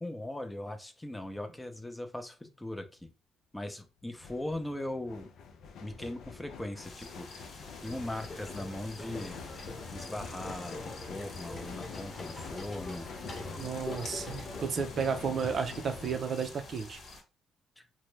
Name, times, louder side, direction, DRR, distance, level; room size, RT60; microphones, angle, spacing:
voice 1, 0.0-3.1 3.5-5.3 5.8-7.3 7.8-9.4 9.9-13.1 17.8-17.9, left 1 dB, 10° left, 0.5 m, -39 dB
sound 1, 3.0-3.1 4.0-16.2, left 5 dB, 80° left, 0.5 m, -46 dB
sound 2, 6.8-17.2, left 3 dB, 60° left, 1.0 m, -49 dB
sound 3, 7.8-14.6, left 2 dB, 30° left, 0.9 m, -45 dB
voice 2, 13.6-17.0, right 6 dB, 55° right, 0.5 m, -33 dB
2.8 x 2.1 x 3.2 m
cardioid pair, 90°, 0 cm